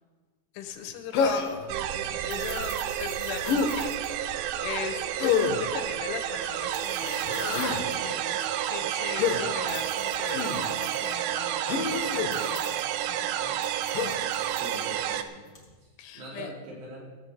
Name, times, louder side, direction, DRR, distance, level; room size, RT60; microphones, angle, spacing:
voice 1, 0.5-12.8 13.2-13.7 16.0-16.5, left 8 dB, 85° left, 6 dB, 3.5 m, -40 dB
sound 1, 0.6-15.7, left 4 dB, 35° left, 1.7 m, -49 dB
Human voice, 1.1-1.7 3.4-3.7 5.2-5.6 7.2-7.8 9.2-9.4 10.3-10.6 11.7-12.3 13.9-14.2, left 6 dB, 70° left, 2.3 m, -27 dB
sound 2, 1.7-15.2, right 11 dB, 85° right, 3.1 m, -30 dB
voice 2, 14.5-15.4 15.8-17.0, right 1 dB, 60° right, -4 dB, 5.4 m, -42 dB
16.5 x 6.2 x 8.1 m, 1.4 s
omnidirectional pair, 5.5 m